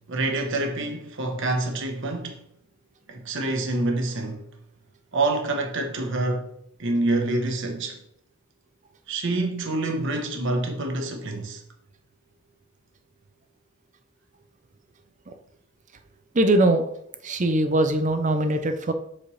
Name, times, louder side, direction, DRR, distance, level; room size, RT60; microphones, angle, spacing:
voice 1, 0.1-2.4 3.1-4.4 5.1-6.5 6.8-8.0 9.1-11.6, right 2 dB, 55° right, 1.1 m, -27 dB
voice 2, 16.3-16.8 17.2-18.9, right 1 dB, 35° right, 0.6 m, -21 dB
7.7 x 4.2 x 3.2 m
head